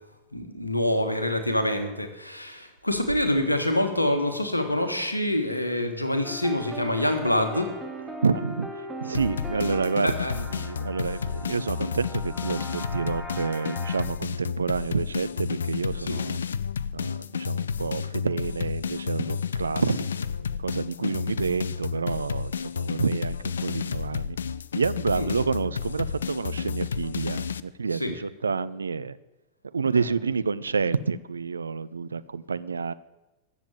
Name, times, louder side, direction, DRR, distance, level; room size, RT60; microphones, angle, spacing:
voice 1, 0.3-7.7 10.0-10.3 16.0-16.2 21.0-21.1 25.1-25.3 27.9-28.1 29.9-30.0, left 1 dB, 85° left, 7 dB, 1.6 m, -26 dB
sound 1, 6.2-14.1, equal, 10° right, 1.9 m, -39 dB
voice 2, 8.2-8.7 9.0-16.4 16.9-24.4 24.7-29.2 29.7-32.9, right 5 dB, 75° right, 15 dB, 0.5 m, -29 dB
sound 2, 9.1-27.6, left 6 dB, 70° left, 0.4 m, -31 dB
14.0 x 7.3 x 8.9 m, 1.0 s
figure-of-eight pair, 90°, 0 cm